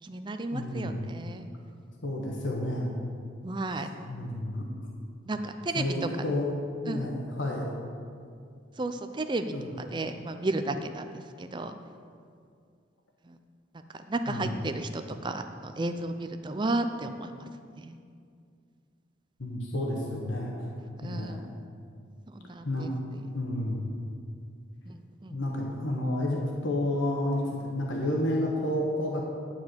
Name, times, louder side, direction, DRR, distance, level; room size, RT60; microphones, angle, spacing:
voice 1, 0.0-1.5 3.4-3.9 5.2-6.1 6.9-7.1 8.8-11.7 13.2-13.4 13.7-17.5 17.8-18.0 21.0-21.5 22.3-23.3 24.9-25.4, right 2 dB, 25° right, 8 dB, 0.4 m, -33 dB
voice 2, 0.5-1.0 2.0-2.9 4.0-4.6 5.7-6.5 6.8-7.7 9.5-9.7 14.3-14.6 19.4-20.5 21.0-21.4 22.6-22.9 23.3-23.8 25.3-29.3, left 1 dB, 85° left, -1 dB, 1.3 m, -30 dB
10.5 x 4.7 x 7.8 m, 2.3 s
head